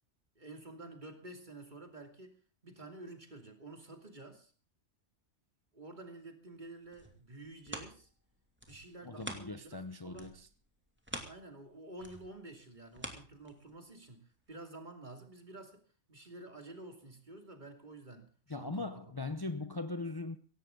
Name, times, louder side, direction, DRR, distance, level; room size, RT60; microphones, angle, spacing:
voice 1, 0.3-4.5 5.7-8.1 8.7-10.4 11.1-15.8 16.1-19.0 19.4-19.7, right 2 dB, 40° right, 2.8 m, -50 dB
sound 1, 6.8-9.8 10.1-13.9 14.4-14.5, right 1 dB, 10° right, 2.5 m, -47 dB
voice 2, 9.0-10.3 18.5-20.4, left 3 dB, 20° left, 0.8 m, -39 dB
17.5 x 16.5 x 3.9 m
omnidirectional pair, 1.2 m